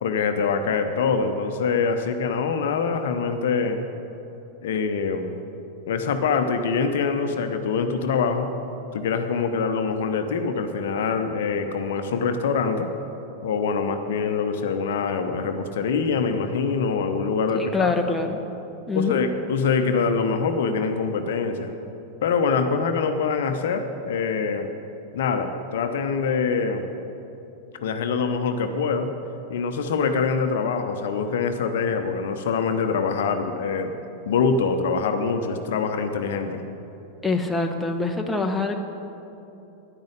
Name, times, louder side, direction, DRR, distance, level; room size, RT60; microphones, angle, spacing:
voice 1, 0.0-3.8 4.6-5.4 5.9-8.5 8.9-12.9 13.4-17.9 18.9-21.8 22.2-24.7 25.1-26.9 27.8-29.1 29.5-34.0 34.3-36.6, left 5 dB, 55° left, 7 dB, 0.8 m, -24 dB
voice 2, 17.5-18.4 18.9-19.2 37.2-38.8, left 3 dB, 5° left, 3 dB, 1.0 m, -25 dB
10.5 x 10.0 x 8.2 m, 3.0 s
figure-of-eight pair, 90°, 0 cm